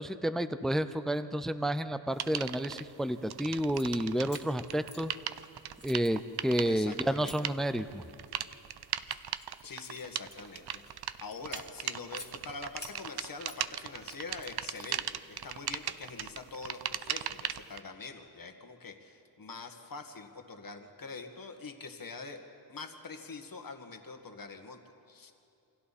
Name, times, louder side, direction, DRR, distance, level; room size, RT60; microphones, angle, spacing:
voice 1, 0.0-5.1 5.8-8.0, right 1 dB, ahead, 11 dB, 0.6 m, -30 dB
sound 1, 2.2-2.8 3.3-17.8, right 10 dB, 60° right, 0.7 m, -38 dB
sound 2, 3.6-3.9 4.3-5.5 5.8-7.4 8.0-8.4 8.8-10.9 11.3-12.3 12.8-13.6 14.0-15.2, left 2 dB, 25° left, 2.4 m, -50 dB
voice 2, 6.6-7.4 9.6-22.4 22.7-24.8 25.1-25.3, left 4 dB, 50° left, 5 dB, 2.0 m, -44 dB
28.0 x 25.0 x 4.3 m, 2.7 s
cardioid pair, 100°, 44 cm